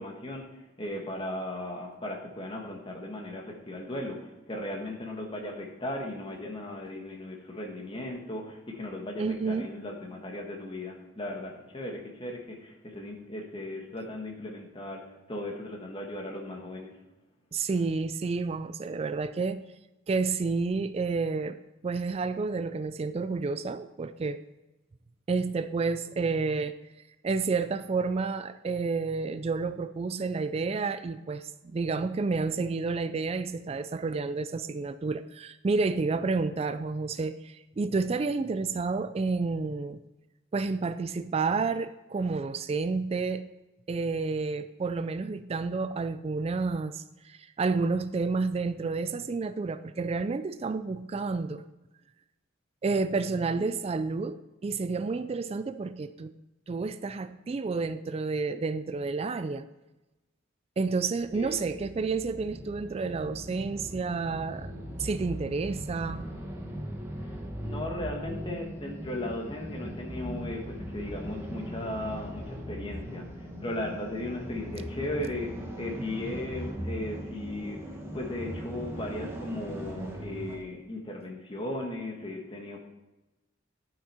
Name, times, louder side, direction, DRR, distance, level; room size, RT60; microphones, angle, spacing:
voice 1, 0.0-15.0 15.3-16.9 53.5-53.8 61.3-61.6 67.3-67.4 67.6-77.8 78.1-82.8, left 1 dB, 25° left, 1 dB, 1.3 m, -37 dB
voice 2, 9.2-9.7 17.5-19.6 20.1-24.4 25.3-26.8 27.2-40.0 40.5-43.5 43.9-51.6 52.8-56.3 56.7-59.6 60.8-66.3, right 4 dB, 30° right, 12 dB, 0.3 m, -30 dB
sound 1, 61.1-80.6, equal, 10° right, 1.1 m, -39 dB
11.0 x 6.1 x 4.3 m, 1.0 s
head